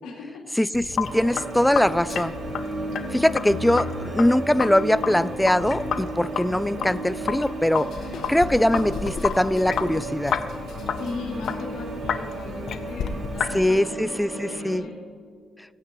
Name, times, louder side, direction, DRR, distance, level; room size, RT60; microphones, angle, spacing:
voice 1, 0.0-0.4 10.9-14.9, left 3 dB, 85° left, -3 dB, 2.9 m, -38 dB
voice 2, 0.6-2.4 3.1-7.9 8.3-10.4 13.5-14.9, left 1 dB, 5° left, 16 dB, 0.3 m, -22 dB
Sink (filling or washing), 0.7-13.6, left 7 dB, 65° left, 0.7 m, -32 dB
sound 1, 1.1-14.8, right 2 dB, 40° right, 2.5 m, -34 dB
17.5 x 8.7 x 3.1 m, 2.1 s
cardioid pair, 90°, 0 cm